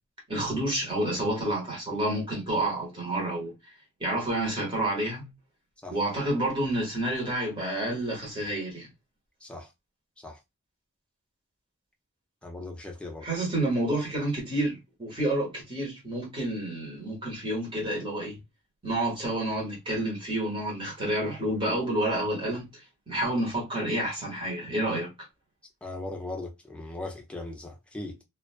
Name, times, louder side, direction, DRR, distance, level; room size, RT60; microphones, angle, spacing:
voice 1, 0.3-3.5 4.0-5.3 5.9-8.9 13.2-18.4 18.8-25.1, right 1 dB, 25° right, 1.1 m, -29 dB
voice 2, 9.4-9.7 10.2-10.4 12.4-13.3 25.8-28.2, left 2 dB, 5° left, 0.5 m, -38 dB
2.3 x 2.2 x 2.4 m
head